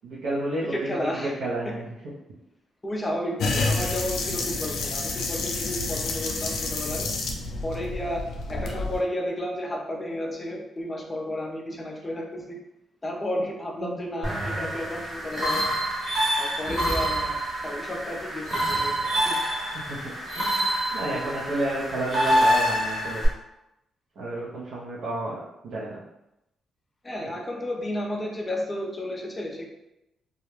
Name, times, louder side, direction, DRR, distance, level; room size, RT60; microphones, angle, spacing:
voice 1, 0.0-0.9 1.2-2.1 13.8-14.0 14.5-14.7 19.7-23.2 24.2-25.4 25.6-26.0 27.2-27.3, right 1 dB, 70° right, -6 dB, 0.5 m, -31 dB
voice 2, 0.7-1.4 1.6-1.7 2.8-7.1 7.6-8.2 8.5-12.6 13.0-15.7 16.4-17.3 17.6-19.4 21.1-21.4 27.0-29.7, left 1 dB, 15° left, 1 dB, 0.4 m, -32 dB
sound 1, 3.4-9.0, left 3 dB, 85° left, 0.3 m, -29 dB
sound 2, 14.2-23.3, equal, 35° right, 0.9 m, -26 dB
2.3 x 2.0 x 2.9 m, 0.88 s
wide cardioid pair, 165°, 0 cm